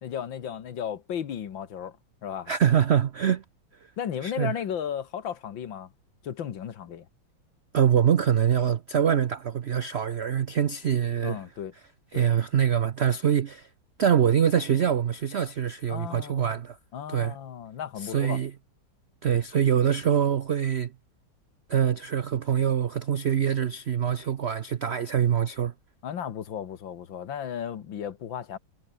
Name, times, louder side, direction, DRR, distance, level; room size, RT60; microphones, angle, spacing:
voice 1, 0.0-2.5 4.0-5.9 6.2-7.1 11.2-11.7 12.1-12.3 15.9-16.5 16.9-18.4 26.0-28.6, left 8 dB, 75° left, 2.2 m, -35 dB
voice 2, 2.5-3.4 4.2-4.5 7.7-11.4 12.1-13.7 14.0-16.8 17.1-17.3 18.0-18.5 19.2-20.9 21.7-25.7, right 9 dB, 80° right, 0.5 m, -24 dB
omnidirectional pair, 2.1 m